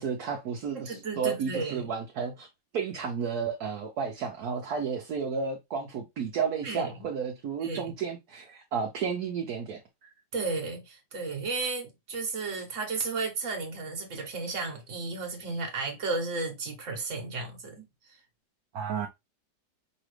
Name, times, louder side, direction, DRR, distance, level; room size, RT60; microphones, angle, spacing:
voice 1, 0.0-2.5 2.7-10.1 18.7-19.1, right 6 dB, 65° right, 1.2 m, -32 dB
voice 2, 0.8-1.9 6.6-7.1 7.6-7.8 10.3-18.2, right 3 dB, 45° right, 1.5 m, -33 dB
5.2 x 2.9 x 3.1 m
omnidirectional pair, 1.9 m